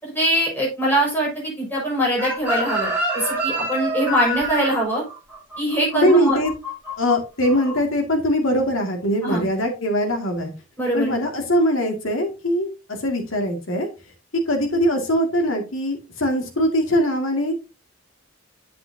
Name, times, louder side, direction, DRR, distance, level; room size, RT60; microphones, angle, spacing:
voice 1, 0.0-5.0 5.6-6.4 9.2-9.5 10.8-11.2, right 1 dB, 10° left, -4 dB, 4.9 m, -22 dB
Chicken rooster, 2.2-7.1 7.4-7.8, right 1 dB, 10° right, 3.3 m, -27 dB
voice 2, 5.9-6.5 7.0-10.5 10.9-12.7 13.0-13.9 14.3-17.5, equal, 70° left, 3 dB, 2.0 m, -21 dB
8.4 x 7.5 x 2.6 m, 0.29 s
head